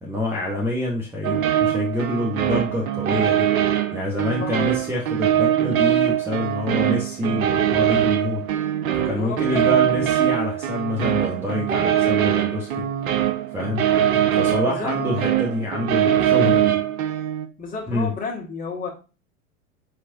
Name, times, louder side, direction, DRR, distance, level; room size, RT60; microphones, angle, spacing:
voice 1, 0.0-3.5 3.9-8.5 9.0-12.9 13.5-13.8 14.3-16.8 17.9-18.1, left 1 dB, 5° right, 0.8 m, -27 dB
sound 1, 1.2-17.5, right 11 dB, 75° right, 0.6 m, -22 dB
voice 2, 4.4-4.7 9.0-9.8 14.6-14.9 17.6-18.9, left 4 dB, 20° left, 1.4 m, -31 dB
5.5 x 3.1 x 2.7 m
figure-of-eight pair, 95°, 42 cm